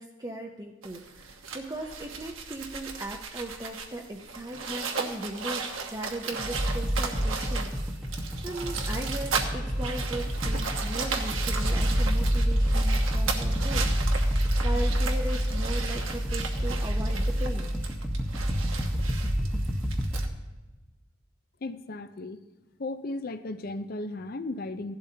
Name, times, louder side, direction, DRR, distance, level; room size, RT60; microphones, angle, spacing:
voice 1, 0.0-7.7 8.4-13.9 14.3-17.8, right 1 dB, 20° right, 0 dB, 0.6 m, -38 dB
sound 1, 0.8-20.3, right 5 dB, 75° right, 1.1 m, -36 dB
sound 2, 6.4-20.2, equal, ahead, 1.0 m, -28 dB
voice 2, 21.6-22.4 22.8-25.0, left 2 dB, 45° left, 12 dB, 0.5 m, -35 dB
16.0 x 11.5 x 2.8 m, 1.2 s
head